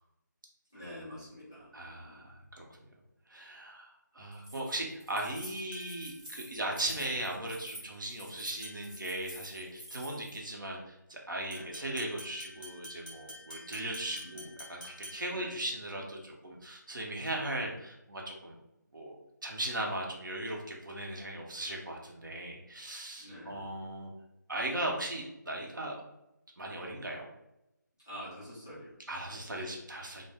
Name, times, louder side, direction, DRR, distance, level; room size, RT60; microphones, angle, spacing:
voice 1, 0.7-1.7 2.0-2.3 11.5-11.7 14.1-14.5 15.3-15.5 23.2-23.7 28.0-28.9 29.3-29.6, equal, 10° left, -12 dB, 0.3 m, -47 dB
voice 2, 1.7-2.6 3.3-18.6 18.9-19.2 19.4-24.1 24.5-26.0 26.6-27.3 29.1-30.2, right 1 dB, 80° right, -1 dB, 0.7 m, -38 dB
Keys jangling, 4.3-10.4, equal, 20° right, 0.8 m, -49 dB
sound 1, 5.7-6.2 8.6-9.0 11.5-15.5, left 1 dB, 35° left, 0.9 m, -49 dB
2.1 x 2.0 x 3.4 m, 0.89 s
figure-of-eight pair, 175°, 10 cm